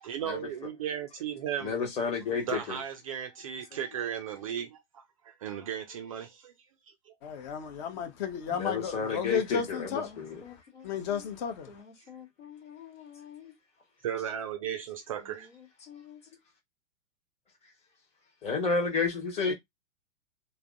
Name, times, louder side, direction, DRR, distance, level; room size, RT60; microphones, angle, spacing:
voice 1, 0.0-1.8 2.5-6.5 14.0-15.5, right 9 dB, 30° right, 0.4 m, -36 dB
voice 2, 1.6-2.8 8.6-10.4 18.4-19.5, left 4 dB, 15° left, 1.1 m, -30 dB
voice 3, 7.2-11.8 19.5-19.6, left 7 dB, 35° left, 0.8 m, -34 dB
voice 4, 9.3-9.6 9.9-11.3 11.7-13.5 15.2-16.2, left 7 dB, 70° left, 1.3 m, -50 dB
3.4 x 2.1 x 2.5 m
figure-of-eight pair, 110°, 37 cm